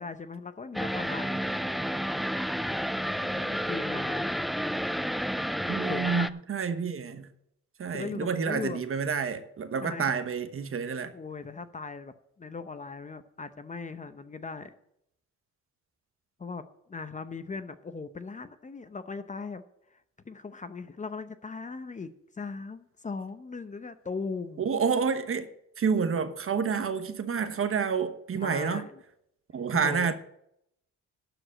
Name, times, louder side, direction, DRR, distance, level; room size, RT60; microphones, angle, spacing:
voice 1, 0.0-1.5 3.1-4.3 5.9-6.3 7.9-8.8 9.8-10.1 11.1-14.7 16.4-16.6 16.9-19.6 19.9-24.7 28.3-29.0 29.7-30.1, left 4 dB, 25° left, 0.8 m, -39 dB
sound 1, 0.7-6.3, equal, ahead, 0.3 m, -30 dB
voice 2, 5.7-7.3 7.8-11.1 24.6-25.5 25.8-28.9 29.5-30.1, right 6 dB, 45° right, 1.1 m, -29 dB
12.0 x 5.1 x 7.6 m
cardioid pair, 90°, 30 cm